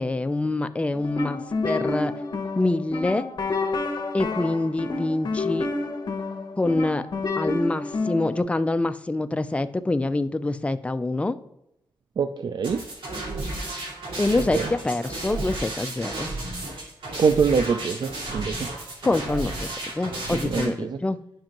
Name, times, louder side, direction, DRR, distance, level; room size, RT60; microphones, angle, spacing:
voice 1, 0.0-2.1 2.6-3.3 4.1-5.7 6.6-7.0 7.4-11.4 14.2-16.3 19.0-19.7 19.9-21.2, left 2 dB, 15° left, 11 dB, 0.4 m, -25 dB
sound 1, 0.9-8.4, left 3 dB, 50° left, 1.0 m, -29 dB
voice 2, 12.2-12.8 14.5-14.7 17.2-18.7 20.4-21.0, right 6 dB, 55° right, 10 dB, 0.4 m, -24 dB
sound 2, 12.6-20.6, right 2 dB, 80° right, 2.5 m, -33 dB
10.0 x 5.3 x 3.0 m, 0.81 s
wide cardioid pair, 100°, 9 cm